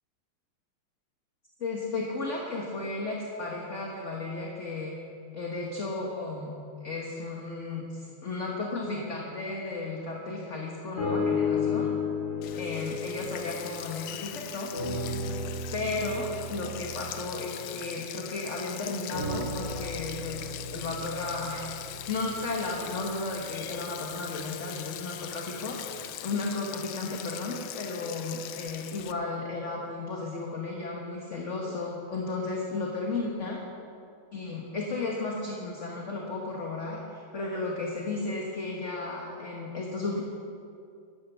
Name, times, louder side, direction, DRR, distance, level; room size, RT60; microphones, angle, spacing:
voice 1, 1.6-4.9 5.3-6.5 6.8-11.9 12.5-14.7 15.7-21.7 22.1-33.6 34.3-40.2, left 3 dB, 40° left, -1 dB, 1.4 m, -34 dB
sound 1, 11.0-14.3 14.7-18.5 19.1-23.3 24.0-24.1, left 4 dB, 55° left, 3.4 m, -34 dB
Sink (filling or washing), 12.4-29.1, left 12 dB, 75° left, 1.4 m, -41 dB
11.5 x 11.5 x 7.1 m, 2.5 s
omnidirectional pair, 2.4 m